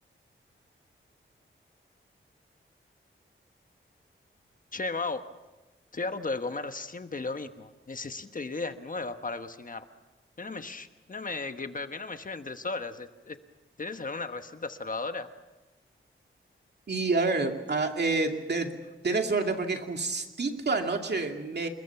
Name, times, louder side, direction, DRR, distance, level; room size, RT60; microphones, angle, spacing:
voice 1, 4.7-5.2 5.9-9.8 10.4-13.4 13.8-15.3, left 3 dB, 40° left, 8 dB, 1.2 m, -35 dB
voice 2, 16.9-18.8 19.0-21.7, right 3 dB, 55° right, 4 dB, 2.5 m, -28 dB
28.5 x 21.5 x 5.8 m, 1.2 s
wide cardioid pair, 115°, 21 cm